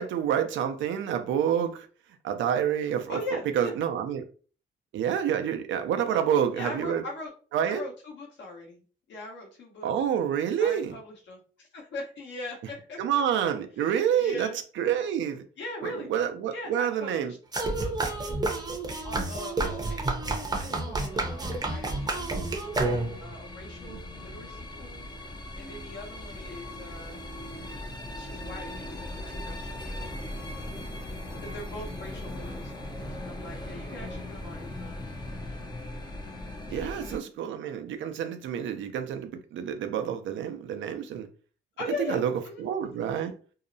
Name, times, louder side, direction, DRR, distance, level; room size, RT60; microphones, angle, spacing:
voice 1, 0.0-1.9 2.2-3.2 3.6-4.3 4.9-7.0 7.5-7.8 9.8-10.9 13.0-14.5 14.8-15.4 15.8-17.3 23.9-24.0 36.7-41.3 42.1-42.3 42.6-43.3, right 9 dB, 75° right, 0.5 m, -28 dB
voice 2, 3.1-3.7 6.1-6.3 6.5-7.3 7.7-8.8 9.1-9.9 10.6-13.0 13.4-13.5 13.8-13.9 14.2-14.6 15.6-16.1 16.5-17.4 17.6-18.1 19.0-20.0 20.4-22.4 23.2-25.1 25.5-27.2 28.1-30.4 31.4-35.0 36.7-36.9 41.8-43.0, left 2 dB, 70° left, 1.1 m, -41 dB
sound 1, 17.5-23.3, right 2 dB, 20° right, 0.7 m, -30 dB
sound 2, 21.0-37.2, left 1 dB, 20° left, 0.5 m, -39 dB
2.7 x 2.0 x 2.6 m
cardioid pair, 90°, 20 cm